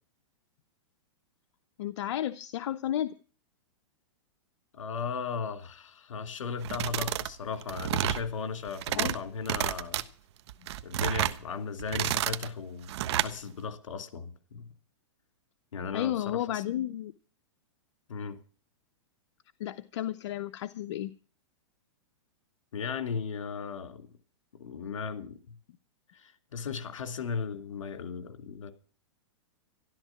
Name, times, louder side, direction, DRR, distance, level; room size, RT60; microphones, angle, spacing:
voice 1, 1.8-3.1 8.9-9.2 15.9-17.1 19.6-21.1, left 12 dB, 65° left, 11 dB, 0.9 m, -32 dB
voice 2, 4.7-10.0 10.8-14.7 15.7-16.6 18.1-18.4 22.7-24.1 24.6-25.6 26.1-28.7, left 5 dB, 85° left, 8 dB, 3.0 m, -36 dB
sound 1, 6.6-7.3 7.6-8.2 8.7-9.2 9.4-10.0 10.5-11.4 11.8-12.5 12.9-13.3, right 13 dB, 60° right, 1.2 m, -30 dB
13.5 x 13.0 x 5.9 m, 0.38 s
hypercardioid pair, 140°, 16 cm